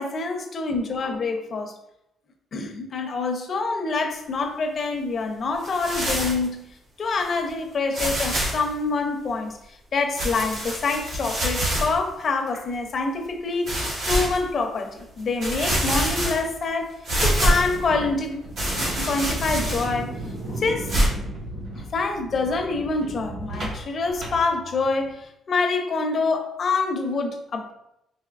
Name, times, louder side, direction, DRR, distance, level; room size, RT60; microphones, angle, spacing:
voice 1, 0.0-1.7 2.5-6.7 7.0-9.6 9.9-17.0 17.2-18.5 18.8-20.2 20.5-20.9 21.9-27.7, left 3 dB, 50° left, 4 dB, 0.6 m, -26 dB
sound 1, 5.6-6.5 7.2-7.3 7.9-8.7 10.2-12.0 12.5-12.6 13.7-14.4 15.0-15.1 15.4-16.6 17.0-17.8 18.6-20.0 20.9-21.1, right 1 dB, 75° right, 1.4 m, -25 dB
sound 2, 17.5-25.1, right 1 dB, 50° right, 1.5 m, -35 dB
4.1 x 2.6 x 2.5 m, 0.82 s
cardioid pair, 90°, 0 cm